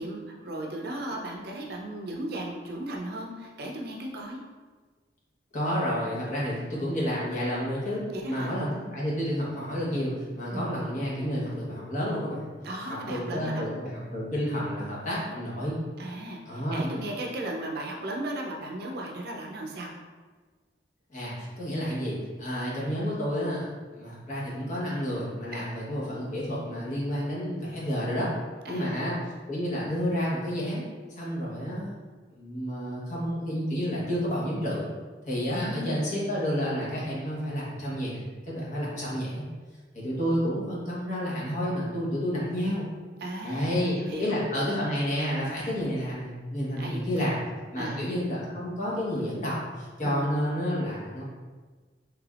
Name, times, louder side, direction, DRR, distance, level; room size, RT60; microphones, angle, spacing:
voice 1, 0.0-4.4 8.1-8.5 10.5-10.7 12.6-13.6 16.0-19.9 25.5-25.7 28.6-29.0 35.5-36.2 43.2-44.4 46.8-47.3 47.8-48.1 50.0-50.4, right 1 dB, 60° right, 0 dB, 0.5 m, -36 dB
voice 2, 5.5-12.5 13.1-15.7 16.5-16.8 21.1-28.3 28.7-29.2 29.5-30.8 31.2-31.9 32.3-34.9 35.3-39.4 39.9-42.9 43.4-47.4 47.7-51.2, equal, 45° left, -7 dB, 1.0 m, -30 dB
3.3 x 3.3 x 2.4 m, 1.4 s
head